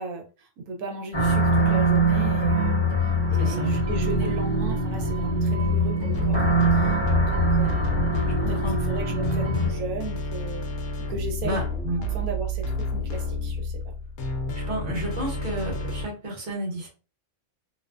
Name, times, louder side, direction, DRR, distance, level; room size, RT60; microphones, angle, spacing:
voice 1, 0.0-2.9 3.3-6.4 6.7-7.0 7.3-8.2 8.5-8.6 8.9-10.7 11.0-11.6 12.1-13.8, right 2 dB, 85° right, 1.0 m, -35 dB
sound 1, 1.1-9.7, right 1 dB, 20° left, 0.9 m, -23 dB
voice 2, 3.4-3.7 8.3-8.8 11.4-12.1 14.5-16.9, right 1 dB, 35° right, 0.9 m, -31 dB
sound 2, 6.1-16.0, left 1 dB, 65° left, 0.8 m, -30 dB
2.5 x 2.1 x 2.4 m
omnidirectional pair, 1.4 m